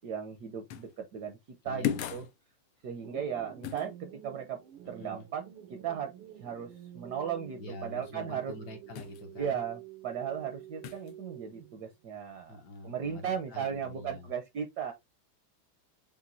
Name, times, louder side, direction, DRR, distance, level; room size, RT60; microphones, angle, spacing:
voice 1, 0.0-1.4 1.6-2.3 2.8-4.6 4.9-5.4 5.7-6.1 6.4-8.5 9.4-12.6 12.8-14.9, right 8 dB, 70° right, 1.0 m, -36 dB
sound 1, 0.7-1.0 1.8-2.3 3.6-3.9 9.0-9.2 10.8-11.1, left 10 dB, 80° left, 1.5 m, -34 dB
voice 2, 1.6-2.2 5.0-5.3 7.6-9.6 12.5-14.3, left 2 dB, 65° left, 1.2 m, -45 dB
sound 2, 3.0-11.9, right 12 dB, 85° right, 1.5 m, -49 dB
7.0 x 2.5 x 2.6 m
omnidirectional pair, 2.4 m